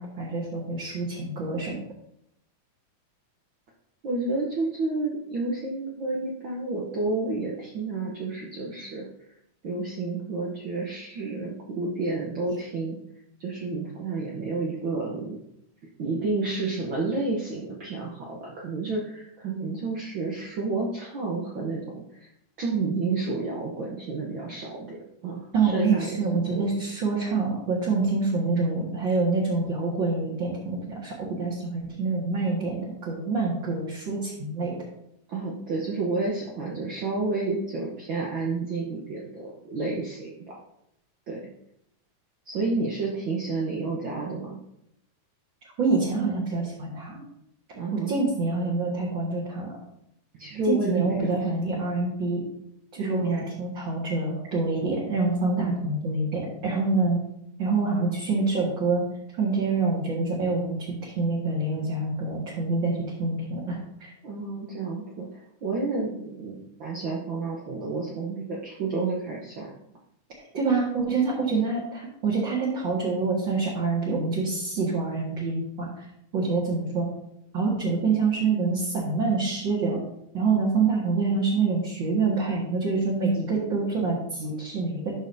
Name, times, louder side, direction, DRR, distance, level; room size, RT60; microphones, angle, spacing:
voice 1, 0.0-1.7 25.5-34.7 45.8-47.2 47.9-49.8 50.7-52.4 52.9-57.2 57.6-59.0 59.4-62.9 63.2-64.1 70.5-76.0 76.3-77.1 77.5-80.0 80.3-85.2, right 3 dB, 45° right, -6 dB, 1.9 m, -26 dB
voice 2, 4.0-9.1 9.6-13.0 13.4-15.4 16.0-22.3 22.6-25.0 25.2-26.7 35.3-40.3 41.3-41.4 42.5-44.6 47.7-48.2 50.4-51.5 53.0-53.5 54.3-54.4 64.2-69.7, right 3 dB, 75° right, -3 dB, 1.1 m, -30 dB
11.5 x 6.4 x 2.7 m, 0.78 s
omnidirectional pair, 3.6 m